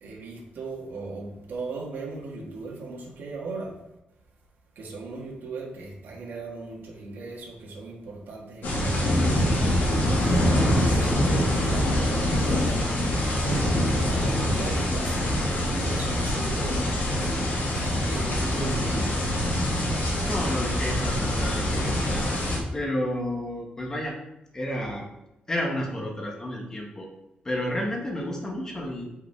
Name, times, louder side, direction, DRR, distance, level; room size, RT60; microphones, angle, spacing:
voice 1, 0.0-3.7 4.8-12.9 13.2-16.8 17.1-19.1, right 3 dB, 85° right, -2 dB, 1.8 m, -38 dB
sound 1, 8.6-22.6, left 1 dB, 85° left, 2.3 m, -24 dB
voice 2, 20.2-22.3 22.7-24.2 24.5-25.0 25.5-27.1 27.4-29.1, left 1 dB, 20° left, 0 dB, 1.5 m, -31 dB
5.8 x 5.3 x 4.7 m, 0.87 s
wide cardioid pair, 160°, 3 cm